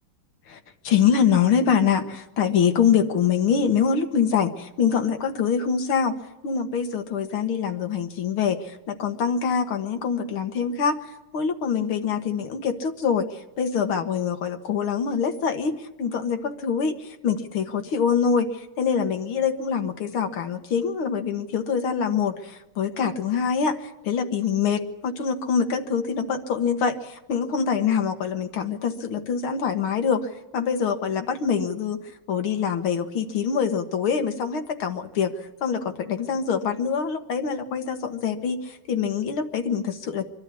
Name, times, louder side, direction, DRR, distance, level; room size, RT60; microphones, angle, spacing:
voice 1, 0.8-6.2 6.4-11.0 11.3-32.0 32.3-38.6 38.9-40.3, left 6 dB, 85° left, 6 dB, 2.3 m, -24 dB
24.0 x 12.0 x 9.7 m, 1.0 s
omnidirectional pair, 2.3 m